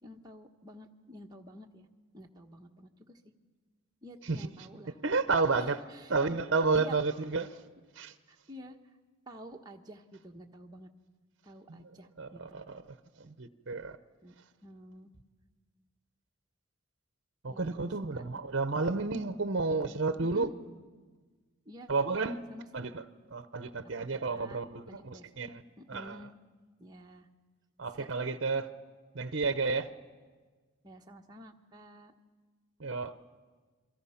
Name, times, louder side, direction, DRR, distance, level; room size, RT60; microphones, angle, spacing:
voice 1, 0.0-1.9 2.1-3.2 4.0-5.0 5.6-6.1 6.7-6.9 8.3-8.8 9.3-10.9 11.4-12.7 14.2-14.4 14.6-15.1 17.5-17.6 18.1-18.2 20.2-20.5 21.6-21.9 22.5-22.9 24.0-24.6 24.9-25.3 25.9-26.3 26.8-27.3 28.0-28.1 30.8-32.1, equal, 20° right, 1.1 m, -49 dB
voice 2, 5.0-5.8 6.1-7.6 8.0-8.1 11.7-11.9 12.2-14.0 17.4-20.5 21.9-22.4 22.7-23.0 23.3-25.6 25.9-26.3 27.8-28.7 29.1-29.9 32.8-33.1, right 4 dB, 55° right, 0.8 m, -31 dB
29.0 x 23.5 x 5.8 m
head